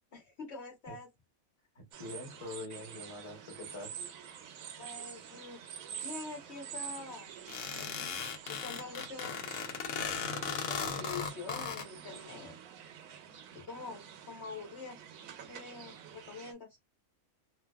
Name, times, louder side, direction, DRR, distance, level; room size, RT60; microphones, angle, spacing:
voice 1, 0.1-1.1 4.8-5.6 6.0-7.3 7.7-8.0 8.5-9.3 10.3-12.6 13.5-15.0 15.4-16.7, left 4 dB, 55° left, 1.0 m, -45 dB
voice 2, 1.7-3.9, left 2 dB, 25° left, 1.0 m, -44 dB
sound 1, 1.9-16.5, right 8 dB, 80° right, 1.0 m, -47 dB
sound 2, 7.5-11.9, left 6 dB, 80° left, 1.1 m, -37 dB
2.7 x 2.5 x 2.2 m
omnidirectional pair, 1.4 m